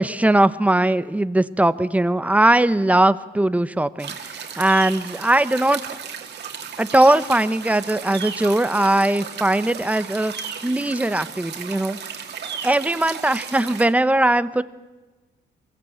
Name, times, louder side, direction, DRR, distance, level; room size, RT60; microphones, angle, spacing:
voice 1, 0.0-5.8 6.8-10.3 10.6-12.0 12.6-14.6, right 1 dB, 5° right, 14 dB, 0.9 m, -19 dB
sound 1, 4.0-13.9, right 7 dB, 55° right, 2.4 m, -34 dB
23.0 x 16.5 x 8.7 m, 1.2 s
cardioid pair, 90°, 20 cm